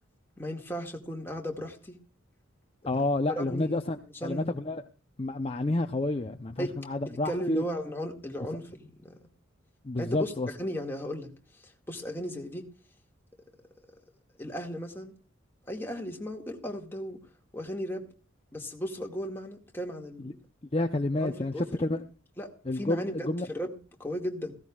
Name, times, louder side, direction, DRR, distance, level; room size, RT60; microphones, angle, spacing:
voice 1, 0.4-2.0 3.3-3.8 4.2-4.6 6.6-6.7 7.0-9.2 10.0-10.3 10.6-11.3 11.9-12.7 14.4-15.1 15.7-17.2 17.5-18.1 18.5-20.4 21.2-22.0 22.4-24.5, equal, 10° left, 2 dB, 2.1 m, -36 dB
voice 2, 2.9-4.8 5.2-7.7 9.8-10.5 20.2-20.3 20.7-22.0 22.6-23.5, left 2 dB, 30° left, 6 dB, 0.7 m, -29 dB
18.0 x 16.0 x 2.4 m, 0.36 s
head